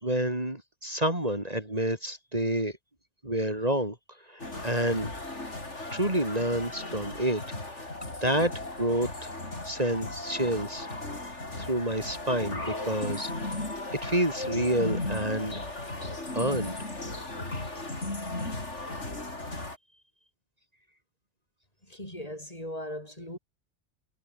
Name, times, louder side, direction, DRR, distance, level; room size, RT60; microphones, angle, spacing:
voice 1, 0.0-2.8 3.2-4.0 4.3-5.1 5.9-7.9 8.2-8.5 8.8-9.3 9.6-10.9 11.6-13.7 13.9-15.6 16.3-16.8, right 1 dB, 35° right, 4.7 m, -29 dB
sound 1, 4.4-19.8, left 2 dB, 75° left, 5.4 m, -36 dB
voice 2, 21.9-23.4, left 1 dB, 30° left, 8.3 m, -38 dB
omnidirectional pair, 1.2 m